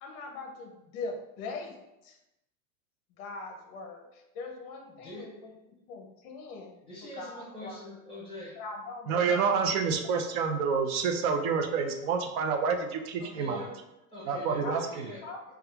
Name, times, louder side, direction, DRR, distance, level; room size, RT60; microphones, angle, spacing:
voice 1, 0.0-1.8 2.0-2.2 3.2-5.5 5.9-6.7 7.0-8.0 8.6-9.5 14.6-14.8 15.2-15.5, left 3 dB, 35° left, 3 dB, 0.5 m, -41 dB
voice 2, 5.0-5.5 6.8-8.6 13.2-15.2, left 1 dB, 10° left, -6 dB, 1.0 m, -44 dB
voice 3, 9.1-13.6 14.3-14.8, right 5 dB, 70° right, 4 dB, 0.6 m, -28 dB
4.3 x 2.3 x 2.3 m, 0.91 s
supercardioid pair, 150°, 45 cm